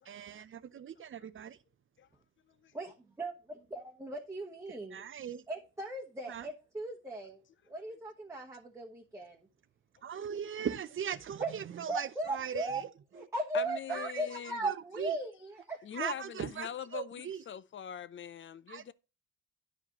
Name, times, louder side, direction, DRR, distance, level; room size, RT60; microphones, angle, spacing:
voice 1, 0.1-1.6 4.7-5.4 6.3-6.5 10.0-12.9 13.2-13.3 13.9-14.2 14.6-15.1 15.9-17.4 18.7-18.8, right 8 dB, 40° right, 0.6 m, -39 dB
voice 2, 2.7-3.3 3.7-5.0 5.5-7.4 7.7-9.5 11.4-11.5 11.9-12.8 13.1-16.1, right 2 dB, 10° right, 1.1 m, -37 dB
voice 3, 13.5-14.6 15.8-18.9, left 9 dB, 40° left, 0.5 m, -42 dB
10.5 x 4.9 x 2.9 m
cardioid pair, 90°, 30 cm